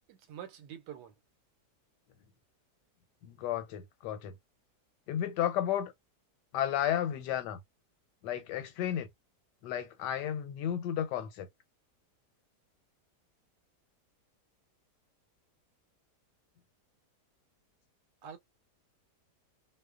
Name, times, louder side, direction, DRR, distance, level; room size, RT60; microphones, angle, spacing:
voice 1, 0.1-1.1 18.2-18.4, right 9 dB, 85° right, 1.2 m, -46 dB
voice 2, 3.2-4.3 5.1-5.9 6.5-7.6 8.2-9.1 9.6-11.5, left 10 dB, 90° left, 1.2 m, -33 dB
2.7 x 2.1 x 2.3 m
omnidirectional pair, 1.8 m